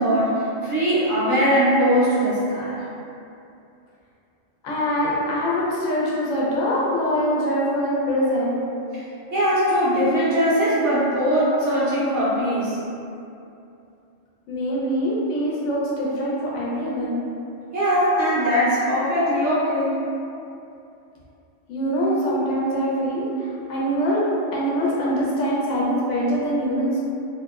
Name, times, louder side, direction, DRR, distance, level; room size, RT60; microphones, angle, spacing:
voice 1, 0.0-2.8 9.3-12.8 17.7-20.0, equal, 65° right, -12 dB, 1.1 m, -20 dB
voice 2, 4.6-8.7 14.5-17.2 21.7-24.2 24.5-27.0, equal, 75° left, -6 dB, 0.9 m, -23 dB
2.7 x 2.0 x 2.3 m, 2.7 s
omnidirectional pair, 1.3 m